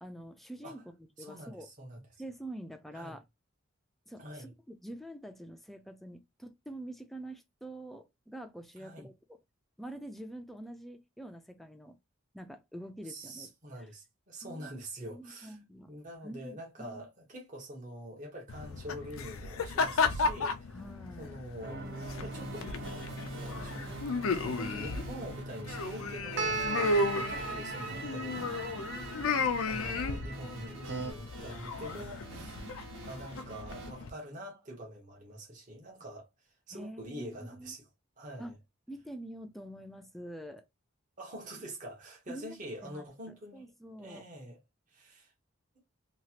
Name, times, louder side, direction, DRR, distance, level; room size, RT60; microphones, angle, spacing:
voice 1, 0.0-1.7 2.2-3.2 4.1-9.1 9.8-12.0 12.3-13.5 13.8-13.9 14.4-14.7 15.1-15.9 16.2-17.1 20.7-21.3 27.9-28.9 32.6-32.8 36.7-37.7 38.4-38.5 38.9-40.6 42.3-42.6 42.8-44.3, right 1 dB, ahead, 0.4 m, -46 dB
voice 2, 1.2-2.0 2.9-3.2 4.2-4.5 8.8-9.1 13.1-15.6 15.9-20.8 21.2-22.7 23.3-23.9 24.1-28.4 29.6-32.7 33.0-36.3 36.7-37.9 38.2-38.5 41.2-43.7 44.0-44.6 44.9-45.3, right 1 dB, 40° right, 1.0 m, -45 dB
sound 1, 18.5-34.1, left 3 dB, 90° left, 0.5 m, -34 dB
sound 2, 21.6-31.1, right 3 dB, 55° right, 0.8 m, -39 dB
sound 3, 22.0-33.9, right 3 dB, 75° right, 1.4 m, -49 dB
3.0 x 2.4 x 2.8 m
head